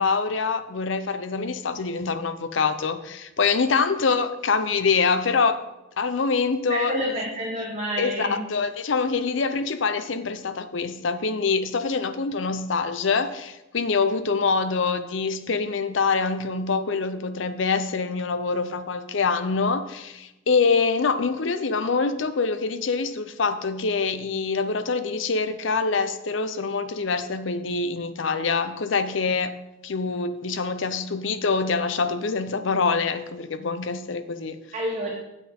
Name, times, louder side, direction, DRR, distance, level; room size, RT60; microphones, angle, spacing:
voice 1, 0.0-5.6 6.0-6.9 8.0-29.5 29.8-34.6, left 4 dB, 70° left, 11 dB, 0.6 m, -25 dB
voice 2, 6.7-8.4 34.7-35.1, equal, 35° right, -1 dB, 1.0 m, -28 dB
8.1 x 7.1 x 4.3 m, 0.95 s
head